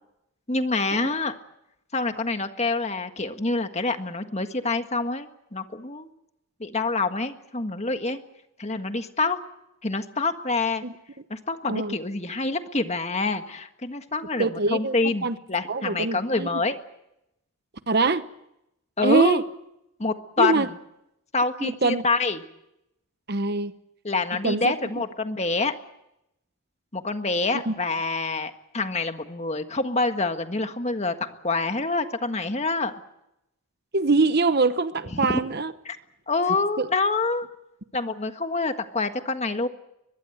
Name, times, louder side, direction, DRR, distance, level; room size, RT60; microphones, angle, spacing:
voice 1, 0.5-1.3 1.9-6.1 6.6-8.2 8.6-9.4 9.8-10.8 11.3-16.8 19.0-19.4 20.0-20.7 21.3-22.4 24.0-25.7 26.9-31.1 31.4-32.9 35.1-35.2 35.8-36.0 36.3-37.5 37.9-39.7, left 3 dB, 30° left, 7 dB, 1.6 m, -26 dB
voice 2, 14.4-14.9 15.2-15.3 15.7-16.6 17.9-18.3 19.0-19.4 20.4-20.7 21.6-22.0 23.3-23.7 24.4-24.7 27.5-27.7 33.9-35.7 36.8-36.9, right 3 dB, 45° right, 12 dB, 0.9 m, -23 dB
23.0 x 22.0 x 8.0 m, 0.84 s
head